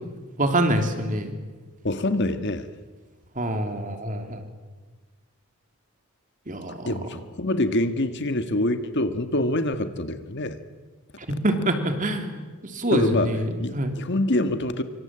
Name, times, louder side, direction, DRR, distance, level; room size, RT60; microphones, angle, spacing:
voice 1, 0.4-1.4 3.3-4.4 6.5-6.9 11.2-12.4 12.7-13.9, right 1 dB, 35° right, 6 dB, 3.1 m, -25 dB
voice 2, 1.8-2.7 6.8-10.6 12.9-14.8, left 1 dB, 55° left, 9 dB, 1.7 m, -25 dB
25.5 x 25.5 x 8.9 m, 1.3 s
head